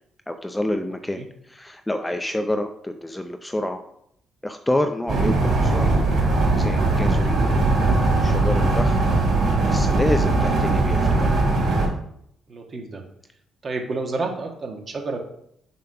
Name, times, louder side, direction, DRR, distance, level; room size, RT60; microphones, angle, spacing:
voice 1, 0.3-3.8 4.4-5.9 6.5-7.5 8.0-9.0 9.6-11.4, left 1 dB, 10° left, 7 dB, 0.6 m, -28 dB
sound 1, 5.1-11.9, right 2 dB, 60° right, 3.1 m, -20 dB
voice 2, 12.5-13.0 13.6-15.2, right 3 dB, 40° right, 2 dB, 1.6 m, -30 dB
6.9 x 3.8 x 5.7 m, 0.72 s
cardioid pair, 90°, 0 cm